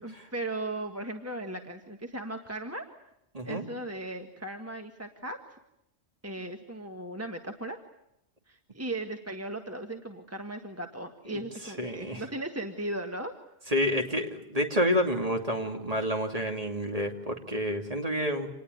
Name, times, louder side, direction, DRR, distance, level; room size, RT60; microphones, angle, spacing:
voice 1, 0.0-2.9 3.4-5.4 6.2-7.8 8.5-13.3, right 1 dB, 15° right, 4 dB, 1.6 m, -37 dB
voice 2, 11.8-12.2 13.7-18.5, equal, 30° right, 2 dB, 2.9 m, -29 dB
27.5 x 19.5 x 9.4 m, 0.83 s
omnidirectional pair, 1.2 m